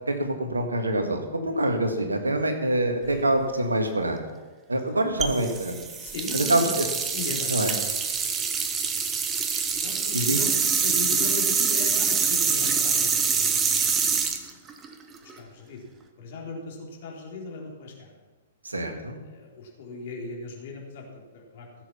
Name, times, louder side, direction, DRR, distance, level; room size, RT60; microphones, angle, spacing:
voice 1, 0.1-4.2 4.7-5.8 6.3-6.9 7.5-7.7 10.1-10.4 18.6-19.2, right 1 dB, 80° right, 5 dB, 1.8 m, -25 dB
voice 2, 3.0-3.4 4.7-4.8 6.0-6.7 7.1-7.6 9.8-10.5 10.8-14.5 15.2-15.9 16.2-18.1 19.2-21.7, left 3 dB, 50° left, -1 dB, 3.6 m, -38 dB
sound 1, 5.2-15.4, right 6 dB, 20° right, 1.1 m, -25 dB
16.5 x 7.8 x 5.8 m, 1.3 s
figure-of-eight pair, 110°, 0 cm